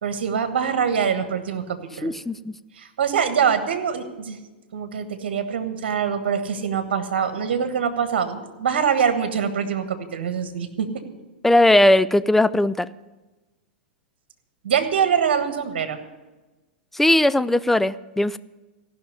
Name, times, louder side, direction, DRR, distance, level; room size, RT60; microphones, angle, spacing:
voice 1, 0.0-2.1 2.8-4.4 4.7-10.9 14.6-16.0, right 7 dB, 70° right, 9 dB, 1.4 m, -24 dB
voice 2, 2.0-2.6 11.4-12.9 16.9-18.4, left 1 dB, 5° left, 15 dB, 0.3 m, -18 dB
15.0 x 6.0 x 9.4 m, 1.2 s
hypercardioid pair, 105°, 6 cm